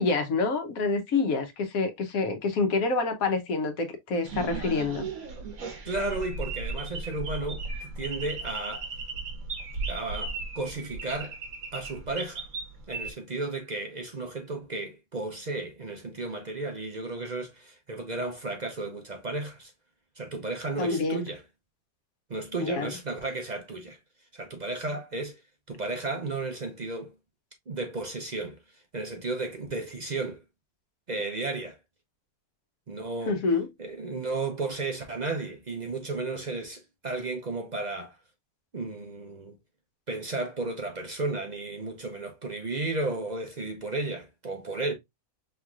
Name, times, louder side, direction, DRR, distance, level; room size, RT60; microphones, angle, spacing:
voice 1, 0.0-5.1 20.8-21.2 22.6-22.9 33.3-33.7, left 3 dB, 70° left, 1.3 m, -27 dB
sound 1, 4.2-13.1, right 3 dB, 70° right, 1.5 m, -36 dB
voice 2, 5.8-8.9 9.9-11.3 11.7-12.5 12.9-19.7 20.2-21.4 22.3-24.0 24.3-25.4 25.7-27.1 27.7-28.6 28.9-30.4 31.1-31.8 32.9-33.4 33.8-38.2 38.7-39.6 40.1-44.9, right 2 dB, 45° right, 0.6 m, -33 dB
5.5 x 3.0 x 2.3 m
omnidirectional pair, 1.6 m